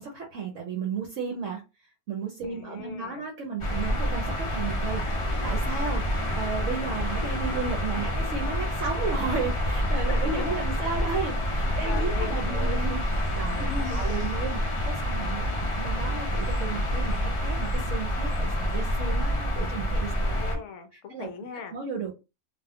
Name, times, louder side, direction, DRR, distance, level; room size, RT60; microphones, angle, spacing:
voice 1, 0.0-1.6 2.1-13.7 13.9-20.1 21.1-21.3 21.7-22.2, right 5 dB, 65° right, 1.0 m, -34 dB
voice 2, 2.4-3.3 8.0-8.1 10.1-11.0 11.6-12.8 13.6-14.1 20.1-21.8, left 5 dB, 65° left, 0.9 m, -39 dB
sound 1, 3.6-20.6, equal, 40° left, 0.4 m, -27 dB
2.6 x 2.2 x 3.4 m
omnidirectional pair, 1.5 m